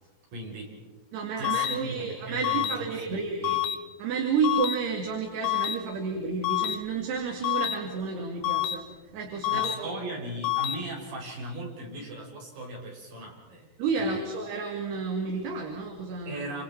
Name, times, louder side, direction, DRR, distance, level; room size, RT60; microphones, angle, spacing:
voice 1, 0.3-0.8 1.4-3.6 9.5-14.3 16.3-16.6, right 1 dB, 55° right, -2 dB, 7.6 m, -39 dB
voice 2, 1.1-3.6 4.0-8.8 9.1-9.9 13.8-16.4, right 5 dB, 70° right, 1 dB, 4.3 m, -31 dB
sound 1, 1.4-1.8 2.4-2.8 3.4-3.8 4.4-4.8 5.4-5.8 6.4-6.8 7.4-7.8 8.4-8.8 9.4-9.8 10.4-10.8, left 14 dB, 75° left, 2.8 m, -27 dB
28.5 x 27.5 x 4.6 m, 1.3 s
omnidirectional pair, 4.9 m